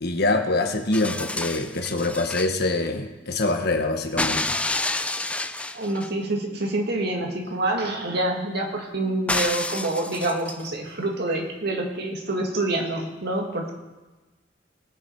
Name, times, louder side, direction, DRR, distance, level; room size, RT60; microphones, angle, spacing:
voice 1, 0.0-4.5, left 2 dB, 60° left, 5 dB, 1.3 m, -25 dB
sound 1, 0.9-2.5 4.2-6.1 9.3-10.7 11.9-12.0, left 2 dB, 5° left, 0.5 m, -29 dB
voice 2, 5.7-13.7, right 2 dB, 60° right, 1 dB, 2.2 m, -27 dB
20.0 x 7.9 x 4.7 m, 1.2 s
head